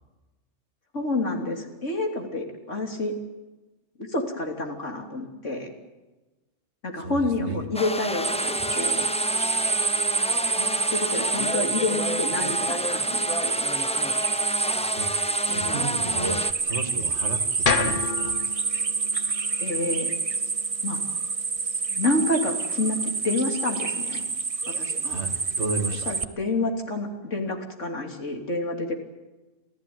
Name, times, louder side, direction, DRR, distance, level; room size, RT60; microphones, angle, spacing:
voice 1, 0.9-3.1 4.0-5.7 6.8-9.1 10.6-13.7 15.5-15.8 19.6-20.1 20.8-21.0 21.9-24.3 24.7-25.2 26.1-29.0, left 2 dB, 65° left, 3 dB, 3.4 m, -29 dB
voice 2, 7.0-7.6 14.9-15.1 15.5-18.3 25.0-26.1, right 3 dB, 55° right, 6 dB, 2.2 m, -33 dB
sound 1, 7.7-16.5, left 1 dB, 5° left, 0.6 m, -30 dB
sound 2, 8.2-26.3, right 4 dB, 30° right, 0.8 m, -27 dB
sound 3, 17.6-21.8, left 5 dB, 45° left, 1.1 m, -31 dB
27.5 x 15.5 x 9.5 m, 1.1 s
omnidirectional pair, 1.4 m